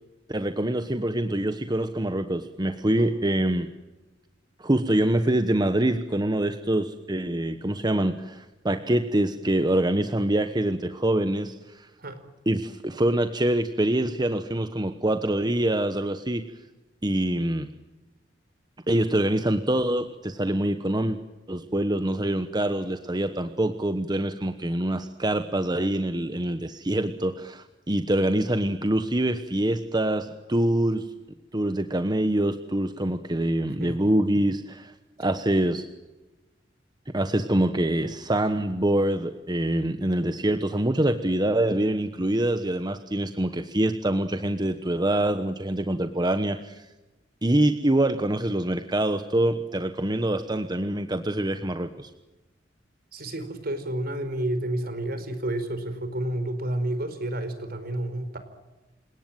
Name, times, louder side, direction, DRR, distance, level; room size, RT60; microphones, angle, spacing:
voice 1, 0.3-3.7 4.6-11.9 12.5-16.4 17.0-17.7 18.9-21.2 21.5-31.1 31.5-34.9 35.2-35.9 37.1-46.9 47.4-52.1, right 1 dB, 25° right, 9 dB, 1.2 m, -25 dB
voice 2, 53.1-58.4, right 1 dB, 55° right, 10 dB, 4.7 m, -30 dB
28.5 x 18.5 x 9.2 m, 1.1 s
head